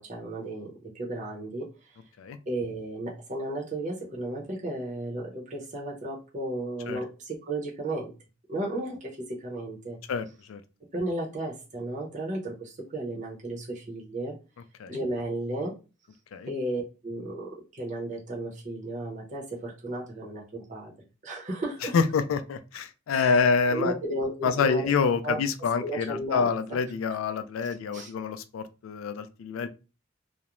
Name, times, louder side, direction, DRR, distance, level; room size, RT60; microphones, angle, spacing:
voice 1, 0.0-1.7 2.5-8.1 8.5-10.0 10.9-14.3 14.9-15.7 16.5-20.9 21.2-22.0 23.1-23.4 23.7-24.9 25.2-25.4 25.8-26.5 27.6-28.1, right 1 dB, 40° right, -3 dB, 0.6 m, -34 dB
voice 2, 10.1-10.6 14.8-15.0 16.3-16.5 21.9-23.9 24.4-29.7, left 5 dB, 85° left, 10 dB, 0.3 m, -27 dB
2.4 x 2.0 x 2.9 m, 0.32 s
head